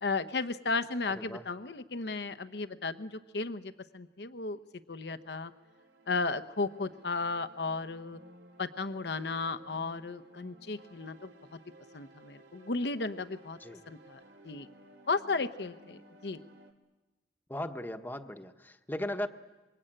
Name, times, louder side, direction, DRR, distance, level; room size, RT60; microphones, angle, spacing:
voice 1, 0.0-4.6 4.9-5.5 6.1-8.2 8.6-11.6 11.9-13.6 13.9-14.7 15.1-16.4, left 3 dB, 65° left, 11 dB, 0.9 m, -34 dB
sound 1, 5.1-16.7, right 1 dB, 85° right, 3.0 m, -57 dB
voice 2, 17.5-19.3, left 1 dB, 10° left, 6 dB, 1.1 m, -37 dB
27.0 x 23.5 x 8.9 m, 1.1 s
head